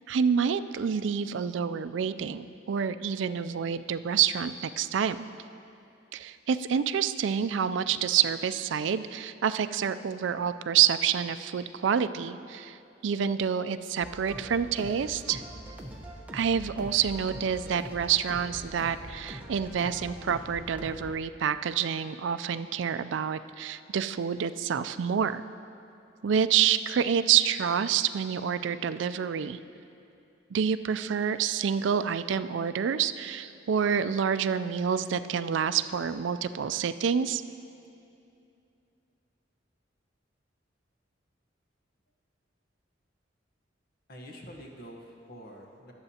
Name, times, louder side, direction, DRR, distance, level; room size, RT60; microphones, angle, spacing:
voice 1, 0.1-5.2 6.1-15.4 16.3-25.4 26.2-29.6 30.5-37.4, right 8 dB, 70° right, 12 dB, 0.4 m, -28 dB
sound 1, 14.0-21.1, right 1 dB, 10° right, 0.8 m, -43 dB
voice 2, 44.1-45.9, equal, 55° left, 0 dB, 1.1 m, -46 dB
23.0 x 7.9 x 2.8 m, 2.7 s
head